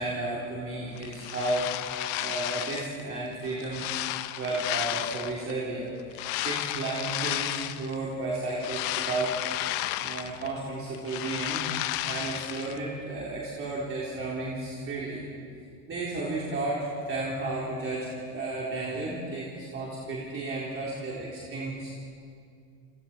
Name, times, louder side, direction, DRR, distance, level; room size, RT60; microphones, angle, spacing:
voice 1, 0.0-1.7 2.2-3.9 4.4-9.4 10.0-11.6 12.0-15.2 15.9-21.9, right 2 dB, 30° right, -5 dB, 3.8 m, -33 dB
sound 1, 1.0-3.0 3.4-5.5 6.1-7.9 8.4-10.6 10.9-12.8, left 15 dB, 70° left, 1.1 m, -33 dB
30.0 x 26.5 x 4.5 m, 2.4 s
cardioid pair, 150°, 45 cm